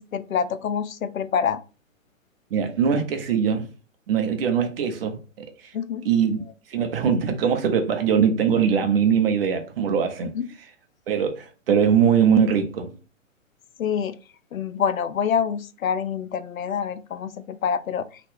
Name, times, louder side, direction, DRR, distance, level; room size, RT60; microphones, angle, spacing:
voice 1, 0.0-1.6 5.7-6.1 10.3-10.5 13.8-14.2 14.5-18.1, left 7 dB, 85° left, 0.5 m, -26 dB
voice 2, 2.5-3.7 4.1-5.7 6.0-6.4 6.7-10.3 11.1-12.9, right 7 dB, 45° right, 0.7 m, -21 dB
2.8 x 2.4 x 3.4 m
figure-of-eight pair, 130°, 40 cm